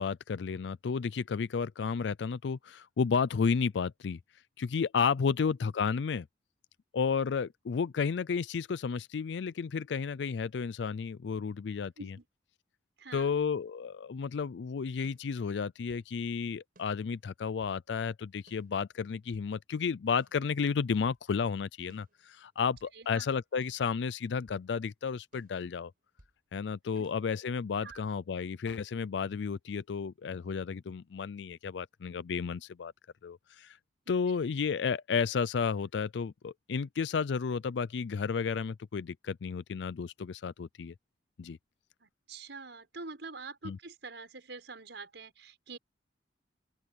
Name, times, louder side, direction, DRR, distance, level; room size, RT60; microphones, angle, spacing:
voice 1, 0.0-4.2 4.6-6.3 6.9-12.2 13.1-25.9 26.5-32.9 33.2-33.8 34.1-40.9 41.4-41.6 43.6-43.8, left 5 dB, 80° left, 0.4 m, -32 dB
voice 2, 13.0-13.3 22.9-23.3 27.0-27.1 27.8-28.0 34.1-34.2 42.0-45.8, right 4 dB, 85° right, 5.4 m, -46 dB
sound 1, 15.0-16.1 16.7-17.8 18.5-19.5 20.2-21.2 21.9-23.0 23.6-24.7 25.3-26.4 27.0-28.1, right 1 dB, 55° right, 7.2 m, -64 dB
open air
head